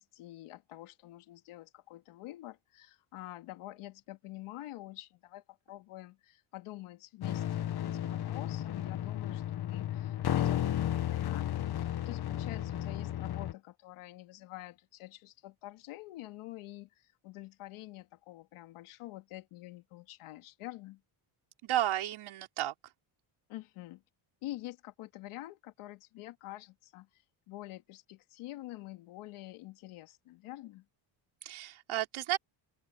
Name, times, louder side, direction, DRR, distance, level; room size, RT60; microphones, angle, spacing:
voice 1, 0.0-21.0 23.5-24.0 24.4-27.1 27.5-30.9, left 16 dB, 90° left, 2.3 m, -47 dB
sound 1, 7.2-13.5, left 11 dB, 50° left, 1.7 m, -33 dB
voice 2, 21.6-22.7 31.4-32.4, right 13 dB, 70° right, 4.4 m, -32 dB
open air
cardioid pair, 110°, 49 cm